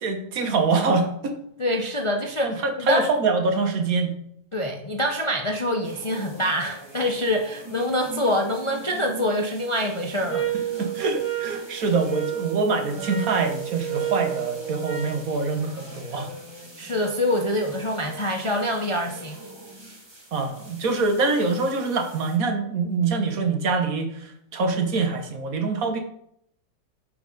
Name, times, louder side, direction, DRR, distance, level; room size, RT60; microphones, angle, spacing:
voice 1, 0.0-1.4 2.4-4.1 10.8-16.3 20.3-26.0, right 4 dB, 60° right, 6 dB, 1.5 m, -24 dB
voice 2, 1.6-3.1 4.5-10.5 16.8-19.4, left 1 dB, 45° left, 2 dB, 0.4 m, -25 dB
sound 1, 5.8-22.4, right 1 dB, 15° right, 1.4 m, -42 dB
sound 2, 10.3-15.2, right 12 dB, 10° left, 1.5 m, -31 dB
7.0 x 5.3 x 5.2 m, 0.70 s
omnidirectional pair, 1.7 m